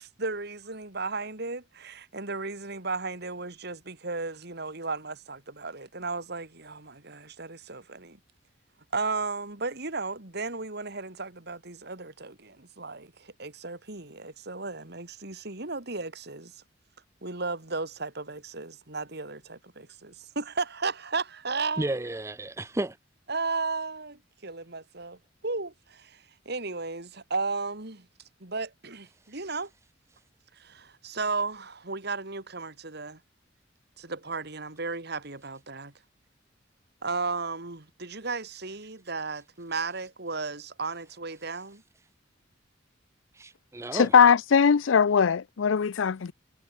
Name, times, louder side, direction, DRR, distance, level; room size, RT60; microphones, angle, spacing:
voice 1, 0.0-8.2 8.9-16.5 17.2-22.0 23.3-25.2 25.4-28.0 28.4-29.7 30.6-33.2 34.0-35.9 37.0-41.8, right 3 dB, 60° right, 3.2 m, -34 dB
voice 2, 21.8-23.0 43.3-44.1, right 1 dB, 15° right, 0.6 m, -32 dB
voice 3, 43.9-46.3, left 6 dB, 90° left, 0.5 m, -20 dB
head